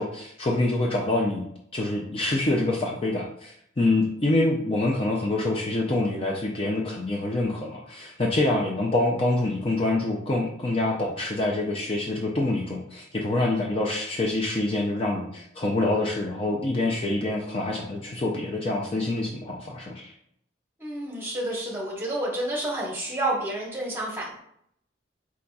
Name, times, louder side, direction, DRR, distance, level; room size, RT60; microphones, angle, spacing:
voice 1, 0.0-1.5 1.7-20.1, left 2 dB, 30° left, -1 dB, 0.4 m, -26 dB
voice 2, 20.8-24.4, right 1 dB, 10° right, -3 dB, 1.1 m, -29 dB
4.7 x 3.9 x 2.3 m, 0.72 s
head